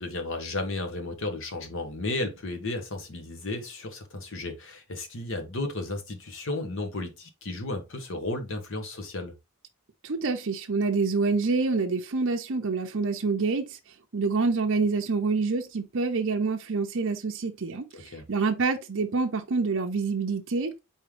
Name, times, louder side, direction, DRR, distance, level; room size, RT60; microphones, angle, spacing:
voice 1, 0.0-9.3 17.9-18.2, left 2 dB, 60° left, 1.1 m, -33 dB
voice 2, 10.0-13.8 14.1-20.7, right 4 dB, 60° right, 0.6 m, -27 dB
4.3 x 3.6 x 3.3 m
head